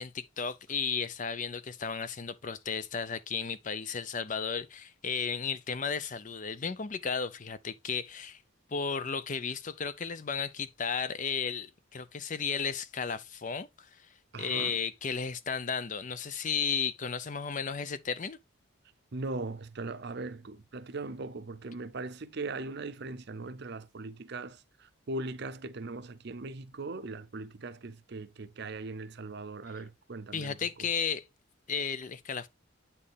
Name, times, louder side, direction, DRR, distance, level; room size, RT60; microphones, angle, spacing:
voice 1, 0.0-8.4 8.7-13.9 14.4-18.4 30.3-31.2 31.7-32.5, left 6 dB, 40° left, 0.5 m, -34 dB
voice 2, 14.3-14.8 19.1-30.9, right 3 dB, 55° right, 0.6 m, -39 dB
8.5 x 4.4 x 3.4 m
head